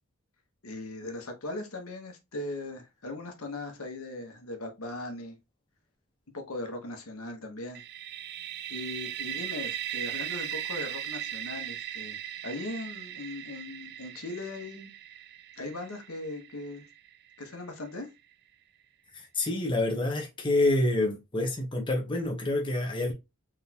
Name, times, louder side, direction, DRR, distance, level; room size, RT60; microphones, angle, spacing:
voice 1, 0.6-5.4 6.3-7.8 8.7-12.2 12.4-14.9 15.6-16.9 17.4-18.1, left 2 dB, 80° left, 1.1 m, -39 dB
sound 1, 7.7-17.4, right 11 dB, 45° right, 0.3 m, -38 dB
voice 2, 19.1-23.1, left 2 dB, 25° left, 0.9 m, -27 dB
4.1 x 3.5 x 2.8 m
head